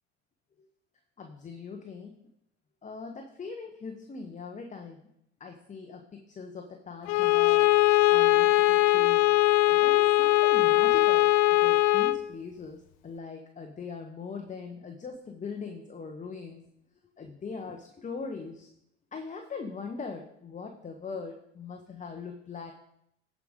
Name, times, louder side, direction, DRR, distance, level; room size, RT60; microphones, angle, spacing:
voice 1, 1.2-2.2 2.8-5.1 5.4-7.7 8.1-9.3 9.7-11.3 11.6-16.6 17.2-18.7 19.1-22.7, left 5 dB, 20° left, 4 dB, 0.8 m, -41 dB
Bowed string instrument, 7.1-12.3, left 17 dB, 70° left, 0.5 m, -21 dB
15.0 x 5.1 x 3.6 m, 0.79 s
supercardioid pair, 90°, 35 cm